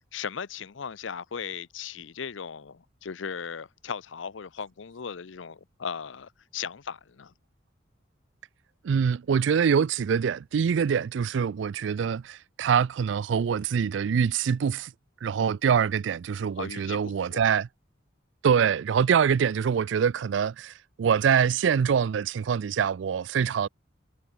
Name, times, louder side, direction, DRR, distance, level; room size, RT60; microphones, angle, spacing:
voice 1, 0.1-7.3 16.6-17.0 17.3-17.4, left 6 dB, 80° left, 0.6 m, -37 dB
voice 2, 8.8-14.9 15.2-17.7 18.4-23.7, right 7 dB, 75° right, 0.4 m, -24 dB
head